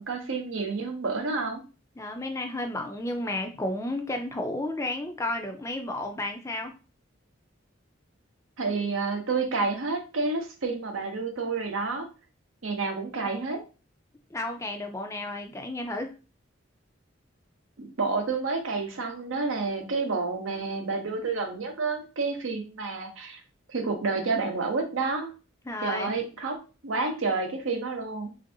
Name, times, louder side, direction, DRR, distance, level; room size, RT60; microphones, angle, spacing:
voice 1, 0.0-1.6 8.6-12.1 12.6-13.6 17.8-23.4 23.7-25.3 25.8-26.6 26.8-28.3, right 4 dB, 85° right, 4 dB, 0.7 m, -29 dB
voice 2, 2.0-6.7 14.3-16.1 25.7-26.1, left 1 dB, 15° left, 4 dB, 0.3 m, -32 dB
3.4 x 2.6 x 2.6 m, 0.33 s
head